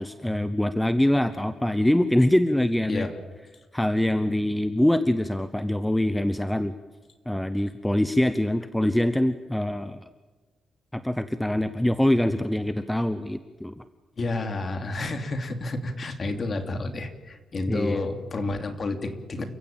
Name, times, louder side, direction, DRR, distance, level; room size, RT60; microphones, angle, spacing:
voice 1, 0.0-3.1 3.7-6.7 7.3-10.1 10.9-13.8 17.7-18.0, left 1 dB, 5° left, 11 dB, 0.8 m, -24 dB
voice 2, 14.2-19.4, left 2 dB, 35° left, 6 dB, 3.0 m, -30 dB
29.5 x 16.5 x 8.9 m, 1.3 s
wide cardioid pair, 155°, 0 cm